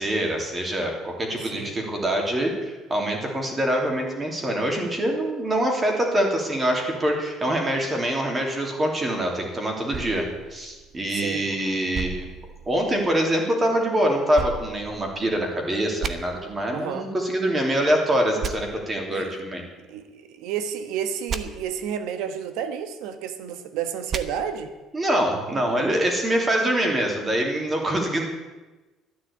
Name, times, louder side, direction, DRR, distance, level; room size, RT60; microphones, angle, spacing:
voice 1, 0.0-12.3 12.7-19.6 24.9-28.2, right 1 dB, 20° right, 1 dB, 3.0 m, -24 dB
voice 2, 1.4-1.8 11.1-11.5 16.7-17.1 19.1-19.4 19.9-24.7, right 8 dB, 85° right, 10 dB, 1.3 m, -31 dB
sound 1, 9.9-11.3 11.9-13.2 14.3-15.5 16.0-16.1 18.4-18.5 21.3-21.4 24.1-24.2, right 6 dB, 40° right, 1.0 m, -33 dB
12.0 x 10.0 x 8.5 m, 1.2 s
cardioid pair, 135°, 0 cm